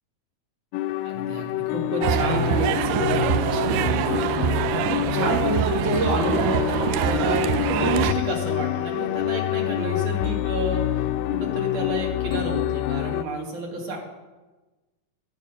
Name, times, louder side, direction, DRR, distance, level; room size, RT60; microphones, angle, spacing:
sound 1, 0.7-13.2, left 13 dB, 80° left, 2.2 m, -27 dB
voice 1, 1.0-14.0, right 1 dB, 60° right, 0 dB, 3.5 m, -30 dB
sound 2, 2.0-8.1, right 11 dB, 85° right, 2.2 m, -24 dB
17.0 x 8.7 x 5.6 m, 1.2 s
omnidirectional pair, 4.0 m